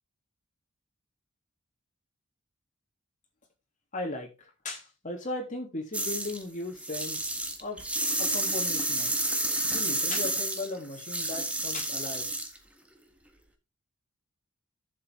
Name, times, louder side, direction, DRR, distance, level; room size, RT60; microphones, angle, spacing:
voice 1, 3.9-4.3 4.6-7.3 7.6-7.8 8.2-9.1 9.7-12.3, left 2 dB, 35° left, 3.3 m, -37 dB
sound 1, 5.9-6.4 6.8-12.6, right 1 dB, 5° right, 1.7 m, -30 dB
11.0 x 7.5 x 3.8 m
head